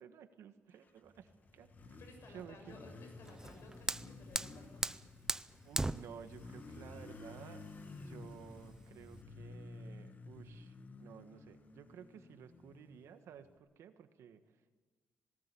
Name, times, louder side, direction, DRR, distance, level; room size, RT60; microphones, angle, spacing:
voice 1, 0.0-2.0 2.3-2.8 5.6-7.6 8.0-14.7, right 8 dB, 85° right, 9 dB, 1.5 m, -54 dB
Motorcycle, 0.9-13.5, left 3 dB, 40° left, 1.8 m, -53 dB
voice 2, 2.0-5.1, left 2 dB, 70° left, 3 dB, 7.2 m, -57 dB
Fire, 3.3-9.2, right 2 dB, 10° right, 0.5 m, -41 dB
18.5 x 18.5 x 8.4 m, 1.4 s
cardioid pair, 105°, 5 cm